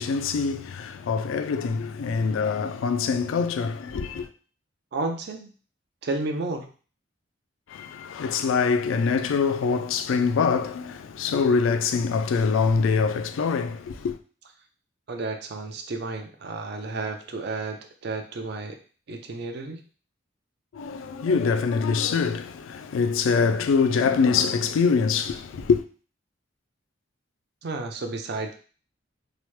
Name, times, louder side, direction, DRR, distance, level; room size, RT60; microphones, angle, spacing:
voice 1, 0.0-4.3 7.7-14.2 20.7-25.8, left 5 dB, 75° left, 0.3 m, -24 dB
voice 2, 4.9-5.5 6.0-6.7 15.1-18.8 19.1-19.8 27.6-28.5, right 3 dB, 55° right, 0.4 m, -32 dB
2.9 x 2.1 x 3.1 m
head